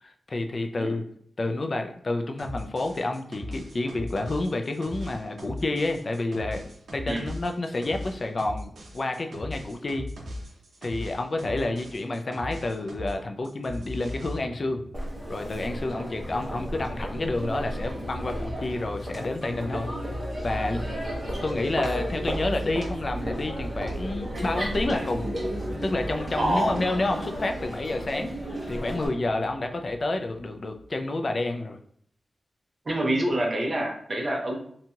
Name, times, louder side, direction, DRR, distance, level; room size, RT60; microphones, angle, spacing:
voice 1, 0.0-1.0 1.4-6.6 6.9-10.1 10.8-14.8 15.3-19.9 20.4-20.9 21.4-25.2 25.8-28.3 28.7-31.8, left 2 dB, 40° left, 5 dB, 0.3 m, -29 dB
sound 1, 2.4-13.2 13.4-14.4, left 1 dB, 75° right, 0.6 m, -38 dB
sound 2, 14.6-31.0, right 1 dB, 80° left, 0.6 m, -39 dB
Crowd, 14.9-29.1, equal, 15° right, 0.9 m, -34 dB
voice 2, 26.4-26.7 32.9-34.6, right 1 dB, 40° right, 0 dB, 0.6 m, -26 dB
2.8 x 2.7 x 2.3 m, 0.64 s
wide cardioid pair, 140°, 0 cm